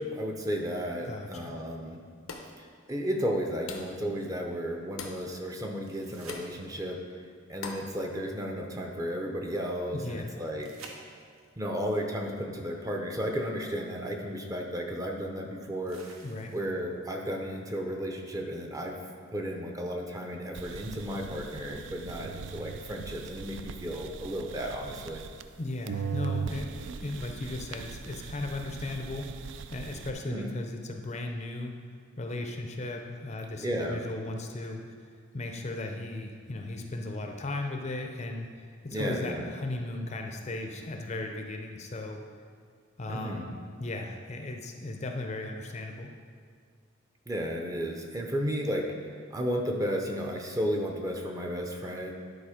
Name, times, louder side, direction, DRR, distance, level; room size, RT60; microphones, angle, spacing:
voice 1, 0.0-2.0 2.6-11.0 11.6-16.0 16.5-19.0 19.3-25.2 30.3-30.5 33.6-34.0 38.9-39.5 43.1-43.5 47.3-52.1, equal, 15° right, 2 dB, 0.6 m, -33 dB
voice 2, 1.0-1.6 9.9-10.3 16.2-16.5 25.6-29.3 29.7-31.8 32.2-34.8 35.3-38.5 38.8-42.2 43.0-46.1, left 2 dB, 30° left, 3 dB, 0.5 m, -36 dB
sound 1, 2.3-2.6 3.7-4.0 5.0-5.3 6.3-6.6 7.6-7.9, left 4 dB, 85° left, 0.8 m, -41 dB
sound 2, 5.8-7.1 10.6-11.6 13.5-13.6 15.9-16.9 19.8-19.9, right 3 dB, 80° right, 1.0 m, -51 dB
sound 3, 20.5-25.6 25.9-30.1, right 6 dB, 60° right, 0.3 m, -39 dB
10.0 x 4.1 x 5.0 m, 2.1 s
head